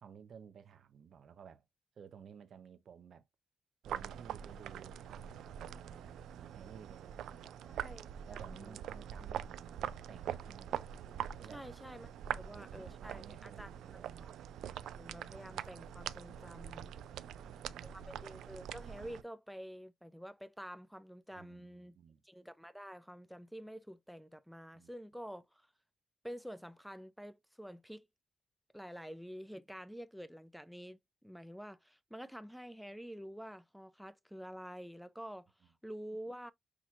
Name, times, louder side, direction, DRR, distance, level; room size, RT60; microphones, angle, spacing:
voice 1, 0.0-1.7 2.0-3.2 3.8-7.9 8.3-10.7 11.4-11.7 12.3-14.4 17.1-18.2 21.3-22.2 24.7-24.9, right 7 dB, 65° right, 0.7 m, -55 dB
sound 1, 3.8-19.2, right 10 dB, 80° right, 0.3 m, -44 dB
voice 2, 7.7-8.8 11.5-12.1 12.4-14.0 15.0-16.9 17.8-22.0 22.2-25.7 26.2-28.1 28.7-36.5, equal, ahead, 0.5 m, -48 dB
5.9 x 2.9 x 2.4 m
supercardioid pair, 65°, 0 cm